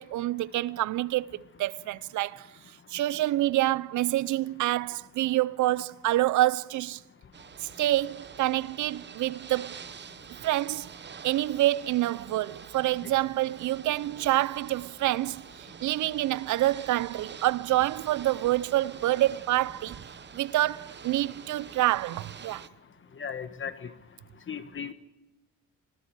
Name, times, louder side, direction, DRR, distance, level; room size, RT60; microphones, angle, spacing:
voice 1, 0.0-2.5 2.9-7.0 7.6-9.7 10.4-10.9 11.2-15.4 15.8-20.0 20.3-22.7, right 15 dB, 75° right, 0.6 m, -27 dB
Ocean / Boat Water vehicle, 7.3-22.7, right 7 dB, 35° right, 0.9 m, -46 dB
voice 2, 23.2-23.9 24.5-24.9, left 7 dB, 40° left, 1.5 m, -36 dB
27.0 x 20.5 x 4.7 m
cardioid pair, 90°, 30 cm